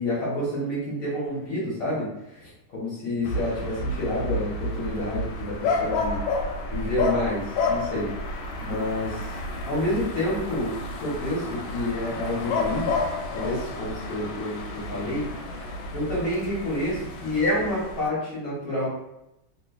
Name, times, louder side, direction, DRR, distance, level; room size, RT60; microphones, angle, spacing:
voice 1, 0.0-6.2 6.7-9.2 9.7-12.9 13.3-18.9, left 1 dB, 55° left, -7 dB, 1.0 m, -29 dB
sound 1, 3.2-18.1, left 2 dB, 75° left, 1.3 m, -30 dB
3.3 x 3.0 x 2.3 m, 0.88 s
omnidirectional pair, 2.4 m